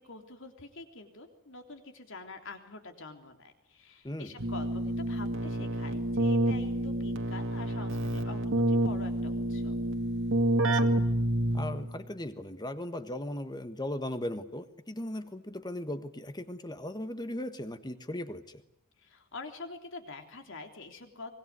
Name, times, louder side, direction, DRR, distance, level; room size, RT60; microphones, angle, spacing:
voice 1, 0.0-9.8 19.0-21.3, left 3 dB, 60° left, 5 dB, 3.4 m, -46 dB
Keyboard (musical), 4.4-12.0, right 1 dB, 60° right, 2.1 m, -28 dB
voice 2, 10.6-11.0 11.5-18.6, left 1 dB, 20° left, 10 dB, 1.4 m, -38 dB
24.5 x 20.5 x 9.6 m, 0.75 s
head